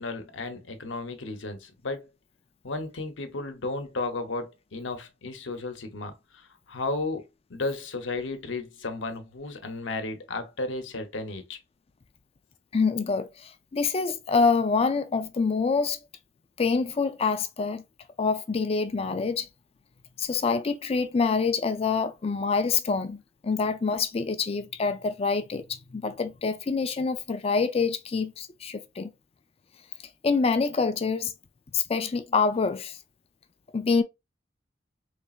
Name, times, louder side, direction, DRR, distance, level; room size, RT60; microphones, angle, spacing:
voice 1, 0.0-2.1 2.6-11.6, left 3 dB, 70° left, 0.9 m, -34 dB
voice 2, 12.7-16.0 16.6-17.8 18.2-19.5 20.2-23.2 23.4-29.1 30.2-31.3 31.7-33.0 33.7-34.0, left 4 dB, 30° left, 0.4 m, -26 dB
4.1 x 3.3 x 2.4 m
head